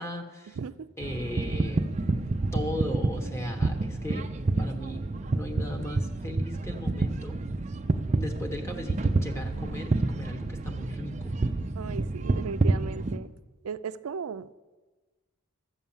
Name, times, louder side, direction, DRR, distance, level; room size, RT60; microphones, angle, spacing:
voice 1, 0.0-0.6 1.0-1.9 2.5-4.3 4.6-5.0 5.3-7.4 8.1-11.3, left 1 dB, 10° left, 3 dB, 1.0 m, -37 dB
voice 2, 0.6-0.9 11.8-13.3 13.6-14.5, right 5 dB, 90° right, 13 dB, 0.4 m, -36 dB
sound 1, 1.0-13.2, right 2 dB, 35° right, 0.5 m, -29 dB
12.5 x 8.1 x 7.2 m, 1.3 s
head